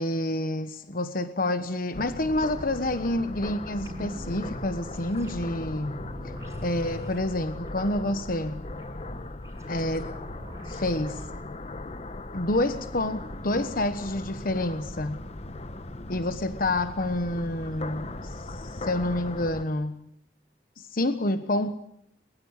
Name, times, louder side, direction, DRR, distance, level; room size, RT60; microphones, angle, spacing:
voice 1, 0.0-6.0 6.6-8.7 9.7-10.1 10.6-11.2 12.3-15.2 16.1-20.1 20.8-21.7, left 1 dB, 55° left, 10 dB, 1.2 m, -28 dB
sound 1, 1.9-19.6, left 2 dB, 35° left, 1.1 m, -38 dB
sound 2, 3.8-11.3, equal, 15° right, 6.9 m, -43 dB
22.0 x 21.0 x 8.2 m, 0.71 s
head